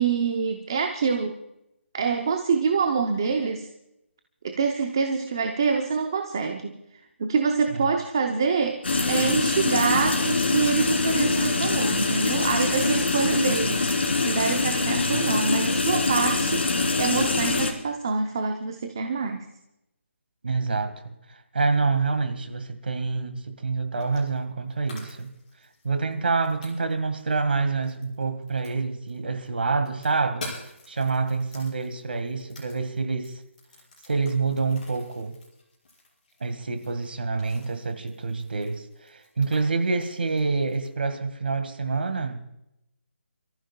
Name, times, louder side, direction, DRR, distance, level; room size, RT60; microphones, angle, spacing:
voice 1, 0.0-1.4 1.9-3.7 4.4-19.5, right 5 dB, 20° right, 0.6 m, -26 dB
sound 1, 8.8-17.7, left 3 dB, 55° left, 3.1 m, -24 dB
voice 2, 20.4-20.9 21.5-25.3 25.8-30.5 30.9-33.4 34.0-35.3 36.4-42.4, right 4 dB, 50° right, 1.7 m, -27 dB
sound 2, 24.0-24.4 24.7-29.2 29.5-40.9, left 2 dB, 35° left, 5.8 m, -47 dB
29.5 x 14.5 x 2.3 m
hypercardioid pair, 180°, 7 cm